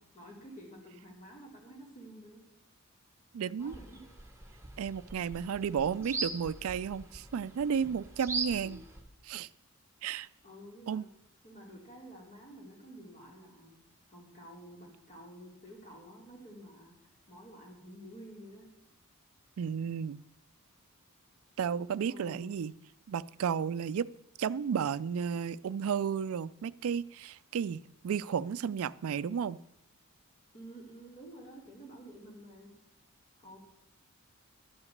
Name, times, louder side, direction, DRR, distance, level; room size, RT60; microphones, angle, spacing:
voice 1, 0.1-2.4 3.6-4.0 8.6-8.8 10.4-11.1 11.4-13.8 14.1-16.9 17.3-18.7 22.1-22.5 30.5-32.7 33.4-33.6, right 1 dB, 35° left, -2 dB, 3.1 m, -50 dB
voice 2, 3.3-3.8 4.8-8.8 9.2-9.5 10.0-10.3 10.9-11.1 19.6-20.2 21.6-22.7 23.1-24.1 24.4-29.6, right 7 dB, 70° right, 16 dB, 0.4 m, -33 dB
sound 1, 3.6-9.0, right 4 dB, 15° right, 1.3 m, -41 dB
11.5 x 5.9 x 7.9 m, 0.83 s
head